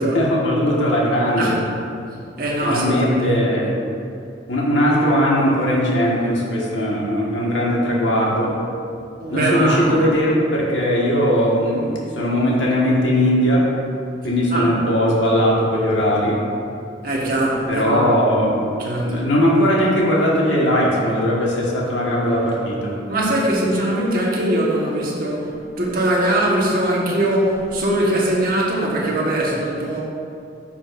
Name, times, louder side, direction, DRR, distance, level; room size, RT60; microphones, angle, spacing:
voice 1, 0.1-1.5 2.6-3.8 4.5-8.5 9.3-13.6 14.2-16.4 17.7-22.9, equal, 85° left, -5 dB, 1.5 m, -19 dB
voice 2, 2.4-3.3 9.2-10.0 14.5-14.7 17.0-18.4 18.8-19.2 23.1-30.0, right 1 dB, 50° right, -4 dB, 1.3 m, -21 dB
9.9 x 6.0 x 2.6 m, 2.5 s
head